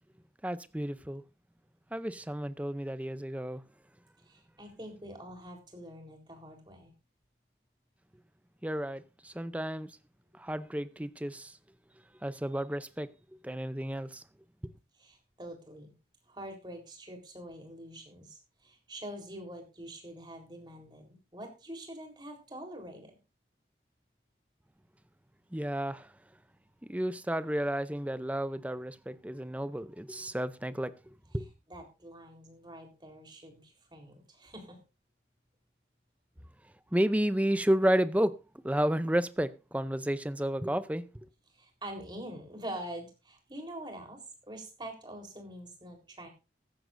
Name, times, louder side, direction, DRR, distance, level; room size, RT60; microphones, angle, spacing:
voice 1, 0.4-1.2 1.9-3.6 8.6-9.9 10.3-11.5 12.2-13.1 13.4-14.2 14.6-14.7 25.5-26.1 26.9-30.9 31.3-31.5 36.9-38.4 38.6-41.1, right 1 dB, 10° right, 0.6 m, -31 dB
voice 2, 4.3-6.9 15.0-15.9 16.3-23.2 31.7-34.8 41.6-44.2 44.5-46.3, right 1 dB, 25° right, 3.9 m, -45 dB
15.0 x 14.5 x 2.6 m
head